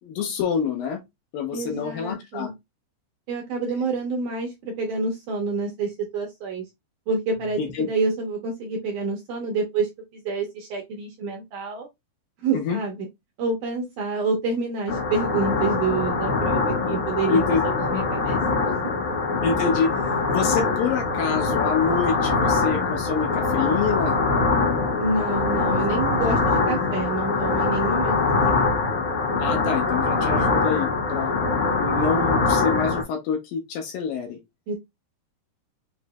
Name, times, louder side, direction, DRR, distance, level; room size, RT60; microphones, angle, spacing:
voice 1, 0.0-1.0 1.3-2.5 7.6-7.9 12.5-12.8 16.9-17.0 17.3-17.6 19.4-20.0 20.3-24.2 29.4-31.3 31.8-34.4, left 6 dB, 75° left, 2.3 m, -26 dB
voice 2, 1.5-2.5 3.3-6.6 7.1-11.9 12.4-13.1 13.4-18.9 25.0-28.8 34.7-34.8, right 3 dB, 70° right, 2.0 m, -28 dB
sound 1, 14.9-33.0, left 3 dB, 90° left, 1.2 m, -23 dB
7.0 x 3.2 x 2.3 m
omnidirectional pair, 4.7 m